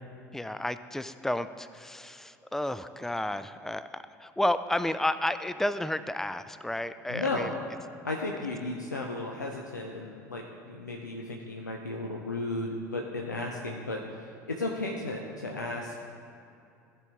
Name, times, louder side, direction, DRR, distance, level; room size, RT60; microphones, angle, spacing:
voice 1, 0.3-7.5, left 1 dB, 5° left, 13 dB, 0.3 m, -31 dB
voice 2, 7.1-7.6 8.0-16.0, left 2 dB, 85° left, 0 dB, 0.6 m, -34 dB
15.0 x 5.2 x 3.5 m, 2.5 s
figure-of-eight pair, 65°, 9 cm